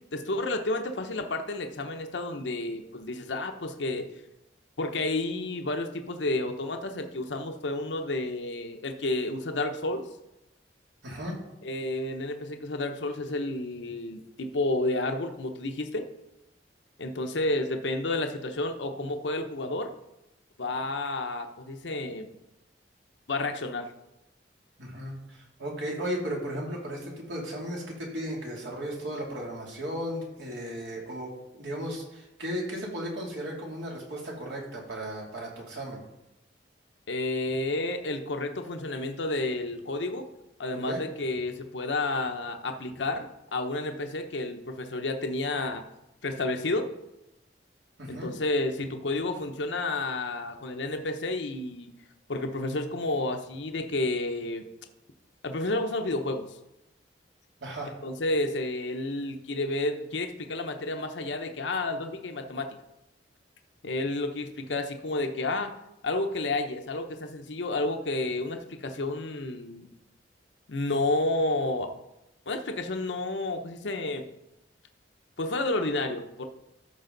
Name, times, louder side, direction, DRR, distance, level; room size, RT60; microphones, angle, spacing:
voice 1, 0.1-4.1 4.8-10.0 11.6-16.1 17.0-19.9 20.6-22.3 23.3-23.9 37.1-40.3 40.6-45.8 46.2-46.9 48.1-51.9 52.3-54.6 55.4-56.6 58.0-62.7 63.8-65.7 66.0-69.9 70.7-71.9 72.5-74.3 75.4-76.4, left 2 dB, 85° left, 5 dB, 0.9 m, -30 dB
voice 2, 11.0-11.3 24.8-36.0 40.9-41.0 48.0-48.3 57.6-57.9, equal, 80° right, -2 dB, 2.8 m, -35 dB
13.5 x 6.2 x 3.9 m, 0.91 s
head